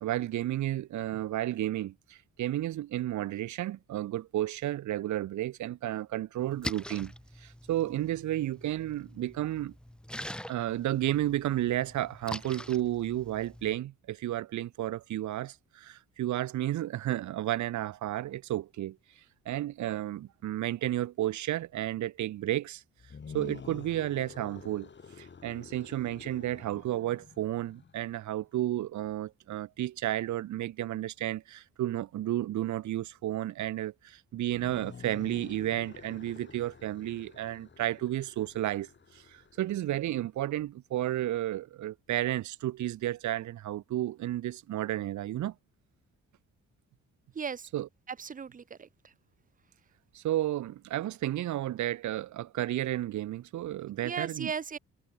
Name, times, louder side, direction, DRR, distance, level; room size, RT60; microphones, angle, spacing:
voice 1, 0.0-7.1 7.4-9.7 10.5-19.0 19.4-22.8 23.3-24.9 25.2-45.5 47.7-47.9 50.1-54.5, right 13 dB, 70° right, 1.2 m, -32 dB
Splash splatter, 6.4-13.7, equal, 5° left, 3.0 m, -44 dB
sound 1, 23.0-28.2 34.4-40.1, left 5 dB, 35° left, 4.5 m, -49 dB
voice 2, 47.3-47.7 48.1-49.1 54.0-54.8, right 6 dB, 25° right, 0.7 m, -37 dB
cardioid pair, 90°, 30 cm